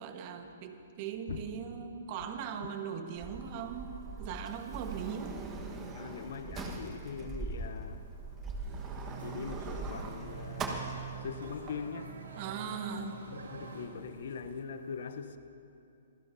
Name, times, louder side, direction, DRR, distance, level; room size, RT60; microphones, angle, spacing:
voice 1, 0.0-5.4 12.4-13.2, right 7 dB, 40° right, 1.3 m, -39 dB
Sliding door, 3.1-11.7, right 3 dB, 20° right, 1.3 m, -41 dB
voice 2, 5.9-8.4 9.2-12.2 13.3-15.4, left 6 dB, 65° left, 0.8 m, -42 dB
sound 1, 8.7-14.6, right 10 dB, 60° right, 0.9 m, -48 dB
sound 2, 8.8-13.9, right 4 dB, 85° right, 2.1 m, -51 dB
24.0 x 16.0 x 2.7 m
hypercardioid pair, 135°, 0 cm